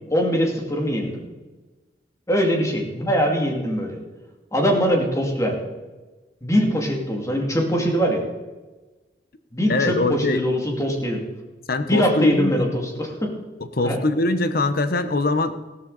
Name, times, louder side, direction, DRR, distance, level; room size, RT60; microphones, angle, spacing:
voice 1, 0.1-1.2 2.3-4.0 4.5-5.6 6.4-8.2 9.5-11.2 11.8-13.3 13.8-14.0, equal, 15° left, 1 dB, 2.4 m, -22 dB
voice 2, 9.7-10.4 11.7-12.5 13.6-15.6, left 2 dB, 55° left, 11 dB, 1.0 m, -22 dB
15.5 x 13.0 x 4.1 m, 1.2 s
head